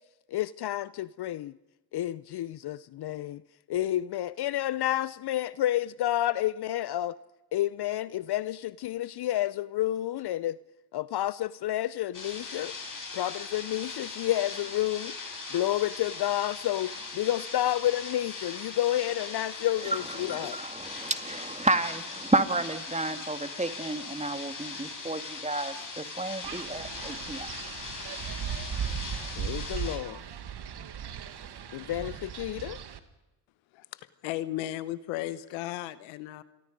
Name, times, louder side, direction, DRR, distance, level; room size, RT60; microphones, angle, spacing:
voice 1, 0.3-1.6 1.9-3.4 3.7-7.2 7.5-10.6 10.9-12.7 13.1-15.2 15.5-20.6 29.4-30.2 31.7-32.8, left 13 dB, 60° left, 0.7 m, -30 dB
sound 1, 12.1-30.0, left 4 dB, 40° left, 7.3 m, -40 dB
voice 2, 19.9-27.5, right 2 dB, 15° right, 2.2 m, -31 dB
Wind, 26.4-33.0, right 8 dB, 60° right, 1.8 m, -37 dB
voice 3, 33.7-36.4, left 14 dB, 90° left, 1.1 m, -35 dB
29.0 x 23.0 x 5.3 m
supercardioid pair, 60°, 45 cm